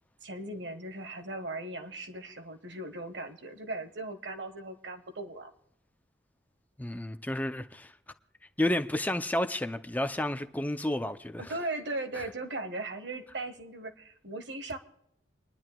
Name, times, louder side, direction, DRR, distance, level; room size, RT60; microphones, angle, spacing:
voice 1, 0.2-5.5 11.4-14.8, right 2 dB, 75° right, 1.5 m, -38 dB
voice 2, 6.8-7.9 8.6-11.5 12.2-12.3, left 1 dB, 10° left, 0.5 m, -31 dB
30.0 x 11.0 x 2.3 m
head